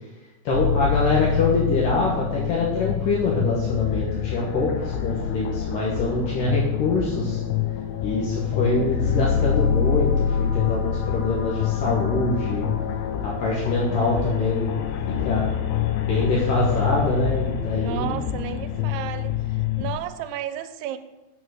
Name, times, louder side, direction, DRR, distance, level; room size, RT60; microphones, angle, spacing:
sound 1, 0.5-19.9, left 9 dB, 90° left, 2.7 m, -26 dB
voice 1, 0.5-7.4 8.0-12.7 13.2-14.8 15.2-15.5 16.0-18.2, left 2 dB, 65° left, -4 dB, 2.6 m, -24 dB
voice 2, 17.8-21.0, right 11 dB, 85° right, 10 dB, 2.6 m, -33 dB
7.3 x 6.5 x 6.4 m, 1.0 s
omnidirectional pair, 4.6 m